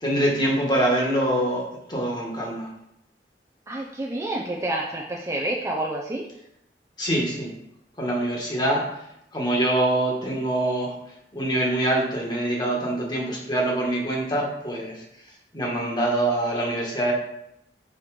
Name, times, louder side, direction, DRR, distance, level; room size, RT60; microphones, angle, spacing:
voice 1, 0.0-2.7 7.0-7.5 8.0-9.0 9.3-11.0 11.3-15.0 15.5-17.1, right 1 dB, 25° left, -1 dB, 1.7 m, -24 dB
voice 2, 3.7-6.2, right 1 dB, 15° right, -1 dB, 0.6 m, -28 dB
5.7 x 4.8 x 4.9 m, 0.79 s
head